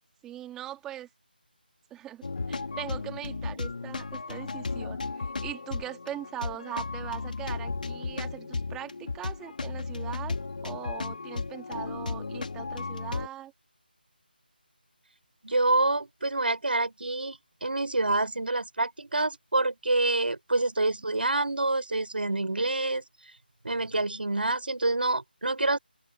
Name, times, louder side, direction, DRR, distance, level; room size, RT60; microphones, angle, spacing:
voice 1, 0.2-1.1 1.9-10.4 10.6-13.5, right 12 dB, 10° right, 3.1 m, -41 dB
sound 1, 2.2-13.3, left 4 dB, 55° left, 2.7 m, -35 dB
voice 2, 15.4-23.0 23.6-25.8, right 2 dB, 70° right, 6.0 m, -27 dB
open air
figure-of-eight pair, 160°, 5 cm